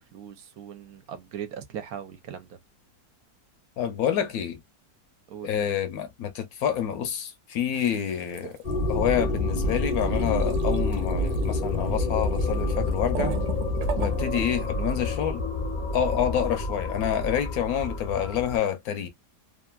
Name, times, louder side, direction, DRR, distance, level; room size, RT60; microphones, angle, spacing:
voice 1, 0.0-2.6 5.3-5.5, right 9 dB, 70° right, 1.1 m, -39 dB
voice 2, 3.8-4.6 5.4-8.6 8.9-13.4 14.0-15.4 15.9-19.1, left 9 dB, 75° left, 1.0 m, -28 dB
sound 1, 7.7-8.7 9.0-9.2 9.5-14.6, right 9 dB, 90° right, 1.2 m, -39 dB
sound 2, 8.6-18.6, left 2 dB, 50° left, 0.5 m, -28 dB
3.0 x 2.4 x 2.3 m
omnidirectional pair, 1.7 m